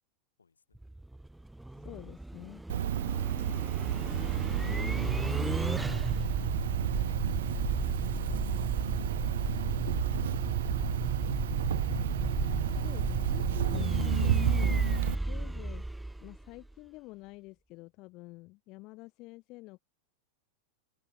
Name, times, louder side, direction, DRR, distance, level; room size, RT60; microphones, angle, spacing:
voice 1, 0.4-0.8 3.6-11.2, left 5 dB, 75° left, 7.4 m, -64 dB
sound 1, 0.7-16.7, right 1 dB, 5° right, 0.5 m, -34 dB
voice 2, 1.7-2.6 12.7-15.9 16.2-19.8, left 22 dB, 40° left, 1.0 m, -48 dB
Cricket, 2.7-15.1, right 11 dB, 60° right, 0.5 m, -31 dB
open air
figure-of-eight pair, 90°, 0 cm